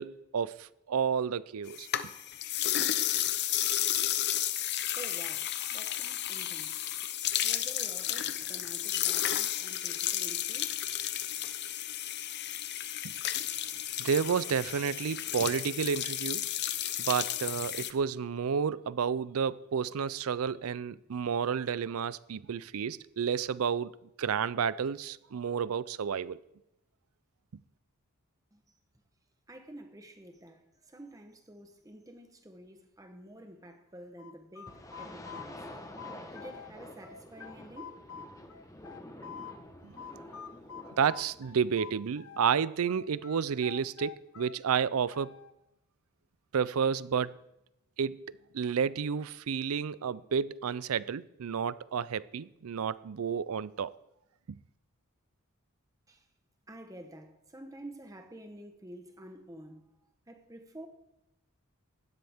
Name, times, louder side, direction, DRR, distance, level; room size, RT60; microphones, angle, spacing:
voice 1, 0.0-1.9 13.0-13.1 14.0-16.5 17.0-26.4 39.8-40.0 41.0-45.3 46.5-47.4 48.0-53.9 54.5-54.6, right 7 dB, 75° right, 0.4 m, -31 dB
sound 1, 1.7-17.9, left 12 dB, 50° left, 0.7 m, -32 dB
voice 2, 4.9-6.9 7.4-10.8 28.5-28.8 29.5-35.7 36.3-38.0 56.1-56.3 56.7-59.9 60.3-60.9, right 1 dB, 15° right, 1.0 m, -49 dB
sound 2, 34.2-36.7 37.0-39.6 40.0-42.5 42.9-45.5, left 7 dB, 70° left, 0.9 m, -46 dB
sound 3, 34.7-41.6, left 1 dB, 15° left, 1.1 m, -48 dB
16.5 x 12.0 x 3.5 m
head